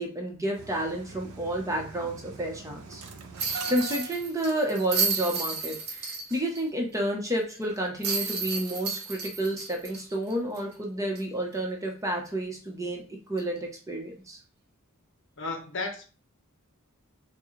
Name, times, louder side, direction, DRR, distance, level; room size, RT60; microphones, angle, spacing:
voice 1, 0.0-3.0 3.7-13.0 13.3-14.4, right 1 dB, 15° right, 0 dB, 1.0 m, -30 dB
Engine starting, 0.6-5.1 5.4-5.5 5.8-6.0, right 4 dB, 85° right, 0.7 m, -42 dB
sound 1, 3.4-6.6 6.9-7.0 8.0-10.7 11.1-11.2 13.4-13.6, right 5 dB, 50° right, 0.9 m, -32 dB
voice 2, 15.4-16.0, left 3 dB, 60° left, 4 dB, 0.9 m, -33 dB
6.0 x 2.3 x 3.2 m, 0.36 s
head